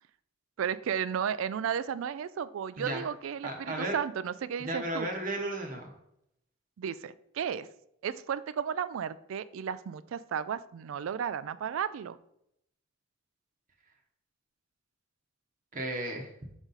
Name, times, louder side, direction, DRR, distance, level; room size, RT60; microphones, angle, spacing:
voice 1, 0.6-5.1 6.8-7.7 8.0-12.2, right 8 dB, 75° right, 15 dB, 0.3 m, -34 dB
voice 2, 3.4-4.0 4.6-5.9 15.7-16.3, right 1 dB, 40° right, 2 dB, 0.9 m, -34 dB
5.9 x 4.0 x 3.9 m, 0.76 s
head